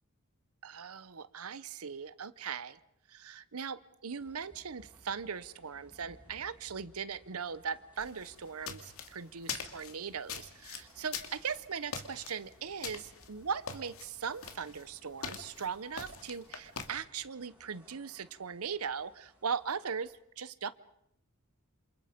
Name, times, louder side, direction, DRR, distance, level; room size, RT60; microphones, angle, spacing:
voice 1, 0.6-2.8 3.1-20.7, right 6 dB, 85° right, 15 dB, 0.9 m, -39 dB
sound 1, 4.1-20.2, right 1 dB, 5° right, 5.8 m, -64 dB
sound 2, 8.0-16.9, left 6 dB, 70° left, 2.6 m, -44 dB
28.0 x 27.5 x 5.2 m, 0.77 s
head